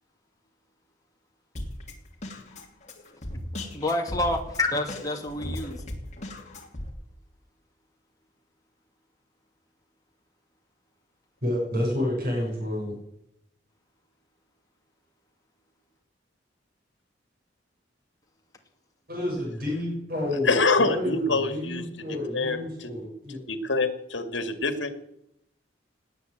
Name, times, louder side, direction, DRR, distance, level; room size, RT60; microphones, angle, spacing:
Drum kit, 1.6-6.9, left 1 dB, 40° left, 2.9 m, -37 dB
voice 1, 3.7-5.8, left 2 dB, 20° left, 1 dB, 2.4 m, -28 dB
voice 2, 11.4-13.0 19.1-23.4, left 1 dB, 50° right, -1 dB, 6.6 m, -30 dB
voice 3, 20.4-22.9 23.3-25.0, left 3 dB, 75° left, 8 dB, 2.3 m, -26 dB
19.0 x 9.3 x 8.0 m, 0.78 s
head